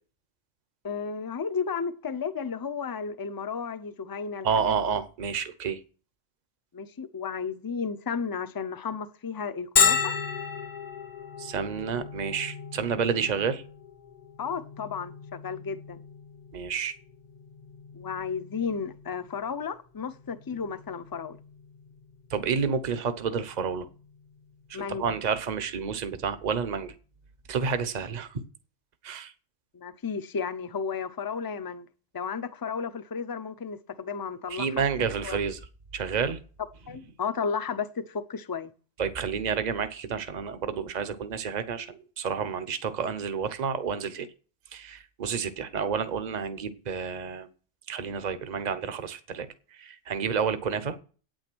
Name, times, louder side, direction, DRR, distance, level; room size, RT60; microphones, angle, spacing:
voice 1, 0.8-4.7 6.7-10.2 14.4-16.0 17.9-21.4 24.7-25.1 29.7-31.9 32.1-34.7 35.2-35.4 36.9-38.7, left 6 dB, 25° left, 0.6 m, -33 dB
voice 2, 4.4-5.8 11.4-13.6 16.5-16.9 22.3-23.9 24.7-26.9 27.5-28.4 29.0-29.3 34.5-35.6 35.9-36.4 39.0-44.3 44.7-47.5 47.9-51.0, right 6 dB, 40° right, 0.9 m, -30 dB
Bell, 9.8-25.2, left 6 dB, 40° left, 0.9 m, -34 dB
9.0 x 8.9 x 6.1 m
omnidirectional pair, 1.2 m